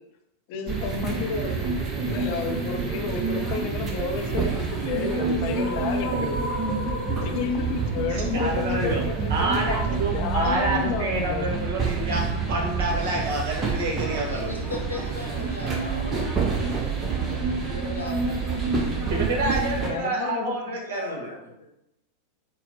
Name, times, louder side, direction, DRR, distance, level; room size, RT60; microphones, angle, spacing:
voice 1, 0.5-6.5 7.1-11.6 18.5-19.1 19.8-20.7, left 5 dB, 45° left, 5 dB, 0.5 m, -31 dB
sound 1, 0.7-19.9, right 5 dB, 25° right, 0.7 m, -28 dB
sound 2, 4.2-10.3, left 1 dB, 5° left, 1.3 m, -36 dB
voice 2, 8.1-9.0 9.3-14.6 19.1-21.3, right 1 dB, 55° right, -1 dB, 1.0 m, -28 dB
voice 3, 14.3-18.7 20.8-21.5, left 3 dB, 80° left, -1 dB, 0.7 m, -38 dB
4.2 x 2.1 x 3.9 m, 0.86 s
figure-of-eight pair, 90°, 0 cm